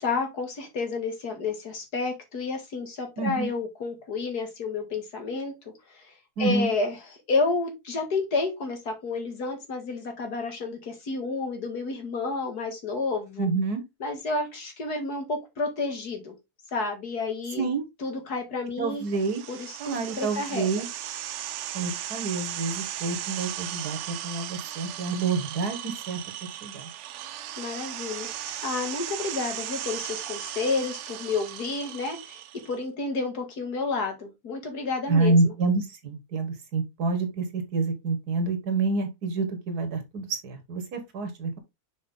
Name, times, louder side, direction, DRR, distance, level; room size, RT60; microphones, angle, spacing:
voice 1, 0.0-5.5 5.9-6.1 6.4-7.0 7.3-13.5 14.0-16.3 16.7-17.7 18.0-19.1 19.5-20.7 27.6-28.3 28.6-35.5, left 3 dB, 85° left, 2.6 m, -30 dB
voice 2, 3.2-3.5 6.4-6.7 13.4-13.8 17.6-17.9 18.8-19.4 19.8-20.9 21.7-26.2 26.5-26.9 35.1-41.6, right 3 dB, 85° right, 2.1 m, -28 dB
sound 1, 19.0-32.8, right 12 dB, 70° right, 0.7 m, -37 dB
6.4 x 4.8 x 3.7 m
omnidirectional pair, 1.6 m